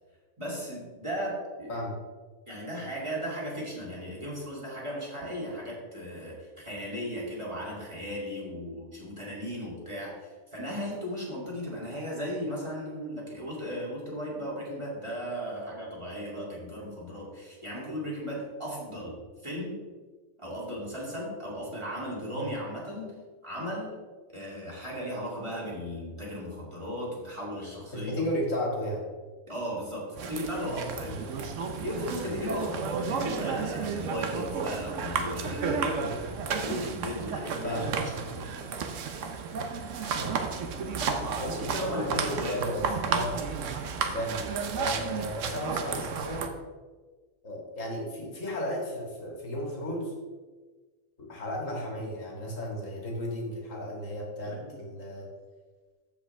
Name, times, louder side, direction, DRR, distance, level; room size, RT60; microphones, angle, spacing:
voice 1, 0.4-1.8 2.5-19.2 19.4-19.8 20.4-23.2 23.4-24.0 24.3-28.3 29.5-31.1 31.8-36.0 36.6-38.5 40.9-42.7 54.4-54.7, equal, 20° right, -6 dB, 2.6 m, -36 dB
voice 2, 27.9-29.0 31.0-31.2 37.6-37.9 40.2-40.3 41.4-43.4 44.1-44.4 44.7-46.5 47.4-50.1 51.2-55.3, equal, 60° left, -1 dB, 2.3 m, -34 dB
sound 1, 30.2-46.5, right 5 dB, 65° right, 1.1 m, -32 dB
14.5 x 5.1 x 3.3 m, 1.4 s
omnidirectional pair, 1.5 m